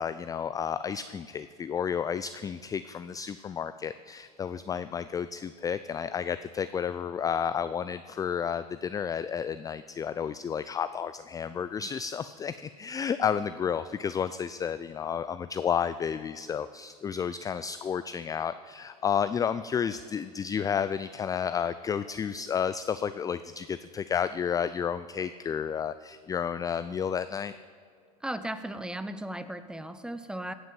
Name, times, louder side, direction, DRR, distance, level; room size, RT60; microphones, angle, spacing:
voice 1, 0.0-27.5, left 7 dB, 20° left, 13 dB, 0.3 m, -31 dB
voice 2, 28.2-30.5, right 1 dB, 5° right, 11 dB, 0.7 m, -36 dB
16.5 x 6.2 x 7.6 m, 2.1 s
hypercardioid pair, 95°, 20 cm